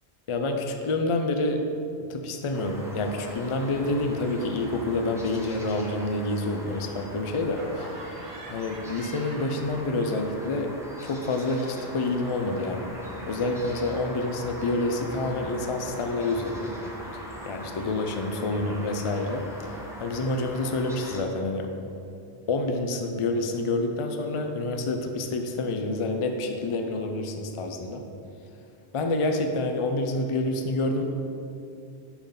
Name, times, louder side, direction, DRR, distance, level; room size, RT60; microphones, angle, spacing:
voice 1, 0.3-1.6 2.1-7.9 8.5-10.7 11.0-12.9 13.3-16.7 17.5-21.7 22.5-28.0 28.9-31.0, left 2 dB, 60° left, 4 dB, 0.3 m, -28 dB
sound 1, 2.5-21.2, equal, 5° right, 0.8 m, -41 dB
Laughter, 7.5-10.3 10.5-13.4, right 2 dB, 35° right, 0.8 m, -47 dB
7.1 x 3.8 x 5.6 m, 2.6 s
omnidirectional pair, 1.1 m